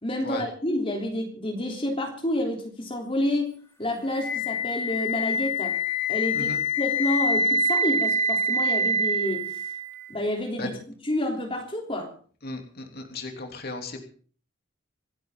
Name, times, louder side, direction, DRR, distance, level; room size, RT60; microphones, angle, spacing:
voice 1, 0.0-5.8 6.1-9.6 10.1-12.1, left 1 dB, 30° left, 1 dB, 3.3 m, -29 dB
Wind instrument woodwind instrument, 4.2-10.1, left 1 dB, 10° left, 3.9 m, -25 dB
voice 2, 12.4-14.0, left 2 dB, 50° left, 4 dB, 3.1 m, -35 dB
27.5 x 10.5 x 3.8 m, 0.43 s
head